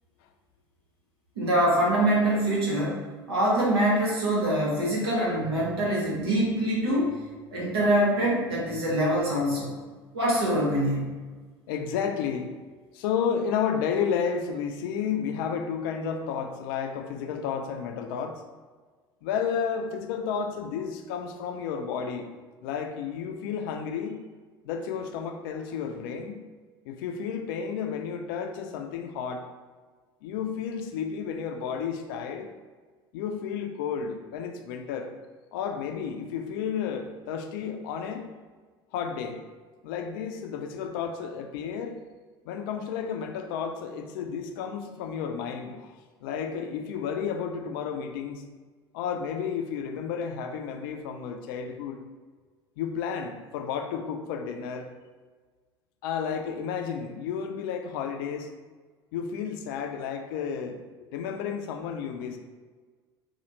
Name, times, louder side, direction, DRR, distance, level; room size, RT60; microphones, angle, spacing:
voice 1, 1.4-7.2 7.5-9.7 10.1-11.1, right 1 dB, 75° right, -5 dB, 1.2 m, -24 dB
voice 2, 11.7-12.5 12.9-18.4 19.2-22.3 22.6-24.2 24.6-26.4 26.9-29.5 30.2-32.5 33.1-35.1 35.5-38.3 38.9-39.4 39.8-42.0 42.4-45.9 46.2-48.4 48.9-52.0 52.8-54.9 56.0-58.5 59.1-60.8 61.1-62.4, left 7 dB, 60° left, 5 dB, 0.4 m, -32 dB
4.2 x 2.3 x 3.0 m, 1.4 s
figure-of-eight pair, 70°, 13 cm